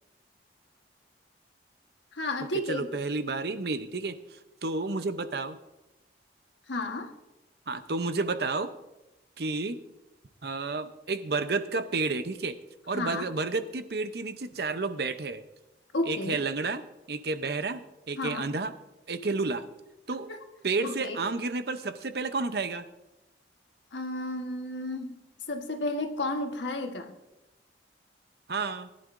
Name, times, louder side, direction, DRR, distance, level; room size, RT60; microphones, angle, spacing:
voice 1, 2.1-2.9 6.7-7.1 12.9-13.3 15.9-16.4 18.2-18.4 20.3-20.4 20.8-21.2 23.9-25.2 25.5-27.1, left 2 dB, 85° left, 4 dB, 1.4 m, -32 dB
voice 2, 2.7-5.6 7.7-8.7 9.4-9.8 10.4-12.6 12.9-15.4 16.1-18.7 19.1-19.6 20.1-20.3 20.6-22.8 28.5-28.9, right 3 dB, 60° right, 10 dB, 0.7 m, -31 dB
19.5 x 11.0 x 2.6 m, 0.98 s
head